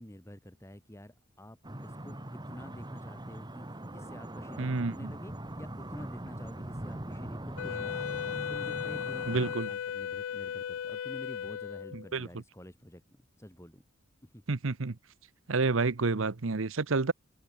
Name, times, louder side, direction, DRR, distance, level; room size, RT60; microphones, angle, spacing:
voice 1, 0.0-13.8 14.2-14.4, equal, 15° left, 3.7 m, -49 dB
sound 1, 1.6-9.5, right 1 dB, 20° right, 1.8 m, -41 dB
voice 2, 4.6-5.1 9.3-9.7 11.9-12.3 14.5-15.0 15.5-17.1, right 3 dB, 70° right, 0.9 m, -29 dB
Wind instrument woodwind instrument, 7.6-12.1, left 8 dB, 75° left, 0.3 m, -36 dB
head